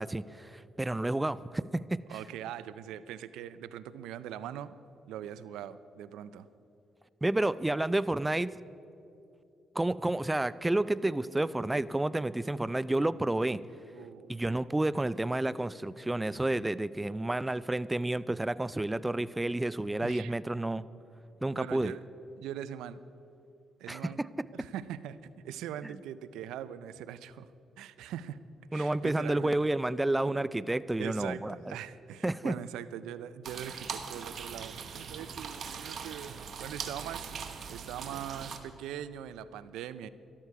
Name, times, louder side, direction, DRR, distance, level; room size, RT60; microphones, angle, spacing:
voice 1, 0.0-2.2 7.2-8.5 9.8-13.6 14.3-20.8 21.4-21.9 23.9-24.5 28.7-31.7 32.2-32.6, right 1 dB, 15° right, 18 dB, 0.4 m, -30 dB
voice 2, 2.1-4.8 5.1-6.5 13.9-14.3 20.0-20.3 21.5-22.0 22.4-23.0 23.8-24.2 24.5-27.5 27.8-28.4 28.7-29.5 31.0-40.1, right 10 dB, 85° right, 15 dB, 0.4 m, -42 dB
sound 1, 33.4-38.6, right 6 dB, 65° right, 1.1 m, -41 dB
13.0 x 12.5 x 4.8 m, 2.8 s
supercardioid pair, 60°, 0 cm